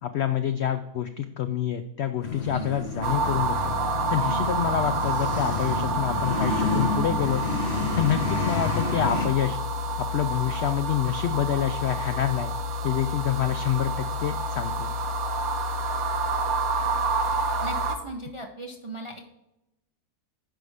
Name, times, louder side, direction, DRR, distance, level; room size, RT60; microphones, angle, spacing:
voice 1, 0.0-3.7 4.1-7.4 7.9-9.6 10.0-12.5 12.8-14.9, left 10 dB, 90° left, 9 dB, 0.5 m, -27 dB
sound 1, 2.2-9.3, left 4 dB, 50° left, 1.3 m, -30 dB
sound 2, 3.0-18.0, right 2 dB, 65° right, 1.3 m, -28 dB
voice 2, 17.6-19.2, right 1 dB, 40° right, 2 dB, 0.4 m, -38 dB
9.2 x 5.4 x 3.5 m, 0.89 s
omnidirectional pair, 1.7 m